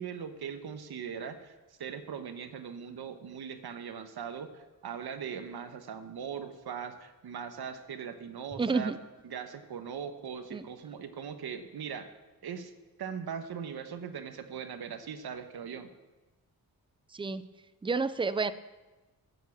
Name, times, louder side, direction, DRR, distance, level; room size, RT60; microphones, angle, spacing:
voice 1, 0.0-1.5 1.8-8.9 9.2-12.1 12.4-12.7 13.0-15.9, right 7 dB, 80° right, 8 dB, 1.2 m, -40 dB
voice 2, 8.6-9.0 10.5-10.7 17.1-17.4 17.8-18.5, right 4 dB, 15° right, 14 dB, 0.4 m, -29 dB
14.0 x 7.4 x 7.2 m, 1.2 s
wide cardioid pair, 155°, 37 cm